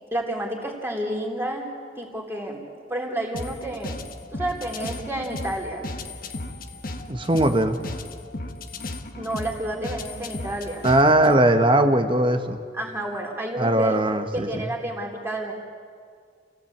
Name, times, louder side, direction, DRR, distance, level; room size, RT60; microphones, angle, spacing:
voice 1, 0.1-1.7 2.0-2.6 2.9-4.0 4.3-5.9 9.2-10.9 12.7-14.0 14.3-15.5, right 1 dB, 15° right, 0 dB, 3.6 m, -30 dB
sound 1, 3.3-11.3, left 2 dB, 55° left, 1.3 m, -35 dB
voice 2, 7.1-7.8 10.8-12.6 13.6-14.6, right 1 dB, 30° right, 8 dB, 1.2 m, -19 dB
28.5 x 16.5 x 8.6 m, 2.1 s
head